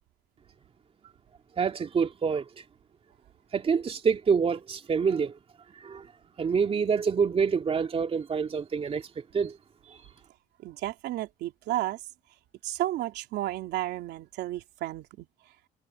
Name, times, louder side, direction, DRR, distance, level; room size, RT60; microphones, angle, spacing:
voice 1, 1.6-2.4 3.5-5.3 5.8-6.1 6.4-9.6 9.9-10.0, right 6 dB, 35° right, 2.6 m, -27 dB
voice 2, 10.6-12.0 12.6-15.3, right 14 dB, 80° right, 3.1 m, -32 dB
cardioid pair, 110°, 17 cm